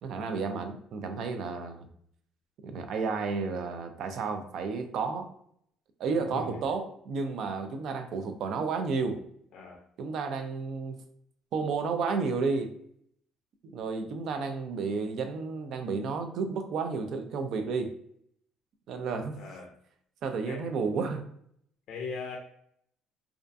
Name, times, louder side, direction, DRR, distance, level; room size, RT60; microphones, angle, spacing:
voice 1, 0.0-1.9 2.6-5.3 6.0-9.2 10.0-11.0 11.5-12.7 13.6-17.9 18.9-19.4 20.2-21.2, right 4 dB, 60° right, 7 dB, 0.3 m, -32 dB
voice 2, 6.1-6.6 9.5-9.8 19.4-19.7 20.5-20.7 21.9-22.4, left 4 dB, 60° left, 0 dB, 0.4 m, -39 dB
2.3 x 2.2 x 2.5 m, 0.69 s
cardioid pair, 130°, 0 cm